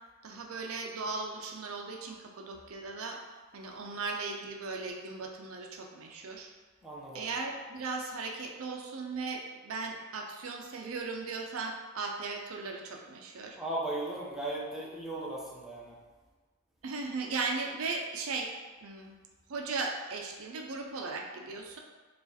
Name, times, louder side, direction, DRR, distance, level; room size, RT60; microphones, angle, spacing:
voice 1, 0.2-3.2 3.5-6.5 7.1-13.6 16.8-18.5 18.8-19.2 19.5-21.8, right 4 dB, 70° right, 2 dB, 0.5 m, -37 dB
voice 2, 6.8-7.3 13.6-16.0, right 1 dB, ahead, -6 dB, 0.8 m, -37 dB
4.7 x 2.4 x 4.1 m, 1.3 s
head